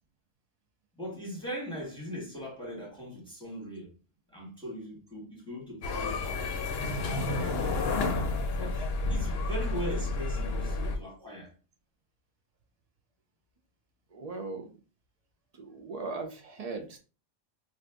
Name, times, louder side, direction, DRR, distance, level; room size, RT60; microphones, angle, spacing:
voice 1, 0.9-3.9 4.3-6.6 7.0-8.1 8.5-11.5, equal, 5° left, 1.2 m, -40 dB
sound 1, 5.8-11.0, left 3 dB, 60° left, 0.8 m, -30 dB
voice 2, 14.1-14.7 15.6-17.0, right 3 dB, 70° right, 0.3 m, -38 dB
2.6 x 2.5 x 3.3 m
omnidirectional pair, 1.3 m